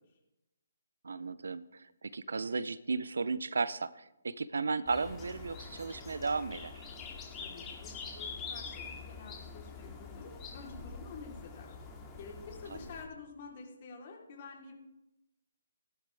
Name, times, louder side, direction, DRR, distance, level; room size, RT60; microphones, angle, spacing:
voice 1, 1.0-6.9, right 4 dB, 70° right, 17 dB, 0.6 m, -35 dB
sound 1, 4.9-13.1, left 5 dB, 15° left, 2.1 m, -45 dB
voice 2, 7.4-11.8 12.2-14.7, left 4 dB, 40° left, 0 dB, 3.6 m, -49 dB
18.0 x 11.5 x 3.4 m, 0.94 s
figure-of-eight pair, 145°, 0 cm